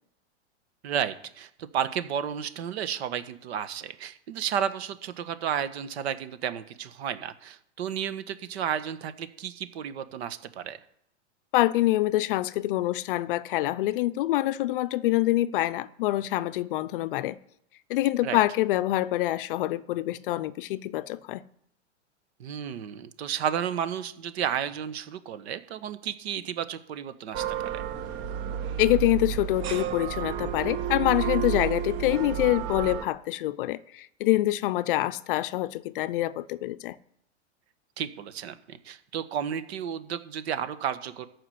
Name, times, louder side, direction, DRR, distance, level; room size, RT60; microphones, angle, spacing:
voice 1, 0.8-10.8 18.2-18.4 22.4-27.8 38.0-41.3, right 9 dB, 60° right, 1.4 m, -32 dB
voice 2, 11.5-17.4 17.9-21.4 28.8-37.0, left 16 dB, 50° left, 0.6 m, -26 dB
sound 1, 27.3-33.1, right 9 dB, 35° right, 1.1 m, -31 dB
14.0 x 5.1 x 9.3 m
hypercardioid pair, 140°, 36 cm